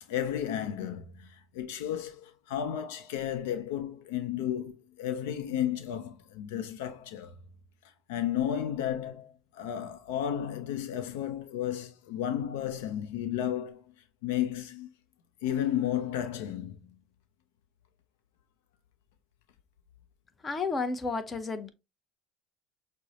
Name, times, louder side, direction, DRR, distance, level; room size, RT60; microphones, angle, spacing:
voice 1, 0.1-7.3 8.1-13.8 14.2-14.9 15.4-17.0, left 10 dB, 85° left, 0.5 m, -33 dB
voice 2, 20.4-21.7, left 4 dB, 30° left, 0.7 m, -31 dB
6.1 x 2.1 x 2.8 m
supercardioid pair, 85°, 0 cm